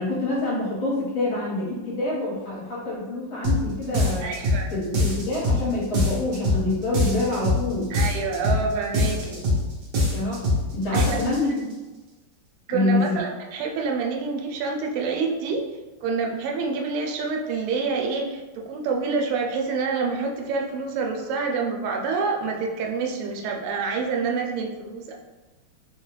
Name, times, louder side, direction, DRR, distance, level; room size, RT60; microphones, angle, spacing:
voice 1, 0.0-4.3 4.7-7.9 10.1-10.4 10.7-11.7 12.7-13.2, left 2 dB, 65° left, -8 dB, 2.1 m, -26 dB
sound 1, 3.4-3.6 3.9-4.6 4.9-5.6 5.9-6.6 6.9-7.6 7.9-8.6 8.9-9.6 9.9-10.6 10.9-11.4, left 1 dB, 60° right, 1.3 m, -22 dB
voice 2, 4.2-4.7 7.9-9.4 10.9-11.2 12.7-15.6 16.0-25.1, right 4 dB, 90° right, 1 dB, 1.5 m, -27 dB
4.1 x 2.3 x 3.1 m, 1.2 s
omnidirectional pair, 2.4 m